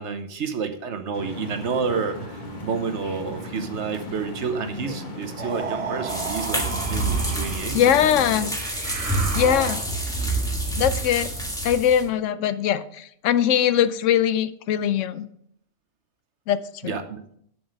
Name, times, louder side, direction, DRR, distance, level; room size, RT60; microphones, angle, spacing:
voice 1, 0.0-8.2 16.8-17.2, right 5 dB, 70° right, 8 dB, 1.3 m, -30 dB
sound 1, 1.1-8.5, left 1 dB, 40° left, 1.4 m, -36 dB
sound 2, 5.4-7.8 8.5-10.1, right 5 dB, 40° right, 0.5 m, -33 dB
sound 3, 6.1-12.1, right 2 dB, 5° left, 1.4 m, -27 dB
voice 2, 7.7-8.5 9.3-9.8 10.7-11.3 11.6-15.3 16.5-17.0, left 9 dB, 90° left, 14 dB, 0.9 m, -21 dB
7.8 x 7.3 x 5.1 m, 0.67 s
omnidirectional pair, 1.2 m